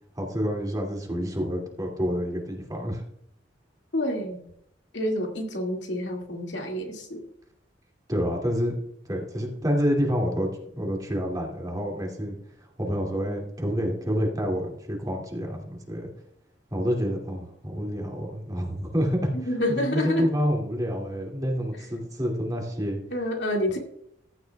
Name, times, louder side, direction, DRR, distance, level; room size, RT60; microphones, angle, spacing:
voice 1, 0.2-3.0 8.1-8.7 9.1-10.5 10.8-12.3 12.8-16.1 16.7-23.0, equal, 20° right, 0 dB, 2.5 m, -28 dB
voice 2, 3.9-4.4 4.9-7.2 19.5-20.2 23.1-23.8, left 1 dB, 80° left, 1 dB, 2.3 m, -28 dB
14.5 x 10.5 x 2.4 m, 0.74 s
head